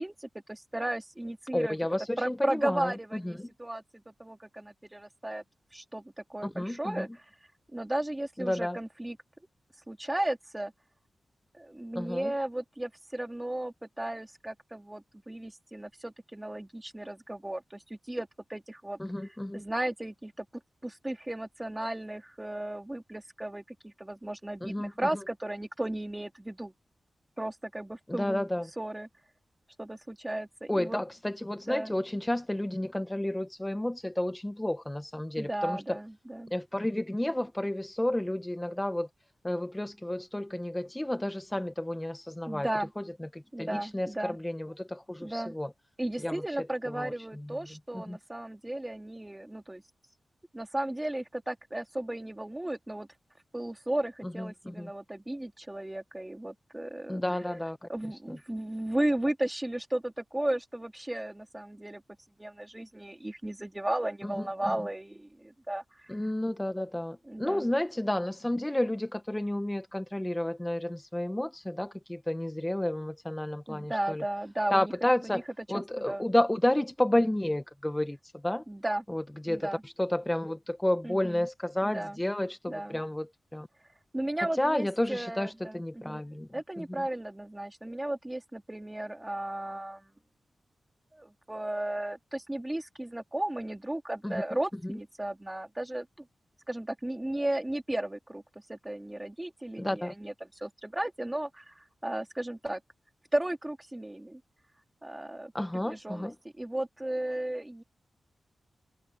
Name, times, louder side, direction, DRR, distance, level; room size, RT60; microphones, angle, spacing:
voice 1, 0.0-1.8 2.2-5.4 5.7-7.2 7.7-9.2 9.9-10.7 11.5-19.0 19.5-20.5 20.8-26.7 27.4-28.5 28.8-29.1 29.8-31.0 31.7-31.9 35.4-36.5 42.5-42.9 43.5-44.4 45.2-45.5 46.0-49.8 50.5-53.1 53.5-57.2 57.9-62.0 62.4-66.2 67.3-67.7 73.7-74.9 75.2-75.4 75.7-76.3 78.7-79.0 79.5-79.8 81.0-81.5 81.8-82.2 82.7-83.0 84.1-86.2 86.5-90.1 91.1-96.3 96.7-98.4 98.7-102.8 103.3-104.4 105.0-106.3 106.6-107.8, right 1 dB, 15° right, 2.9 m, -35 dB
voice 2, 1.5-3.3 6.4-7.1 8.4-8.8 11.9-12.3 19.0-19.6 24.6-25.1 28.1-28.6 30.7-36.0 36.5-39.1 39.4-42.7 43.0-45.7 46.2-46.4 46.9-47.1 47.9-48.2 54.2-54.9 57.1-57.9 64.2-64.4 66.1-74.2 74.7-75.4 75.7-78.6 79.1-83.7 84.6-86.5 86.8-87.0 94.2-94.4 99.8-100.1 105.5-106.3, left 1 dB, 10° left, 0.6 m, -31 dB
wide cardioid pair, 105°, 0 cm